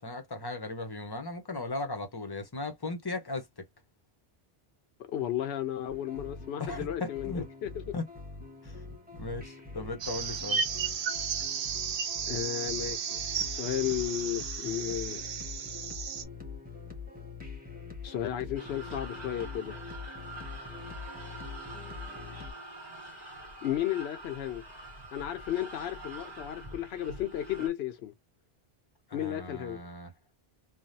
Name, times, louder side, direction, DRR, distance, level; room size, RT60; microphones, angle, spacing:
voice 1, 0.0-3.6 6.6-7.4 7.9-8.0 8.6-10.6 29.1-30.1, left 2 dB, 25° left, 0.6 m, -37 dB
voice 2, 5.0-7.8 12.3-15.3 18.0-19.8 23.6-24.6 25.1-28.1 29.1-29.8, left 11 dB, 85° left, 0.8 m, -34 dB
sound 1, 5.9-22.5, left 4 dB, 10° right, 1.2 m, -44 dB
sound 2, 10.0-16.2, right 7 dB, 65° right, 0.8 m, -34 dB
sound 3, 18.5-27.7, right 2 dB, 40° right, 1.4 m, -45 dB
3.3 x 2.2 x 2.6 m
omnidirectional pair, 1.1 m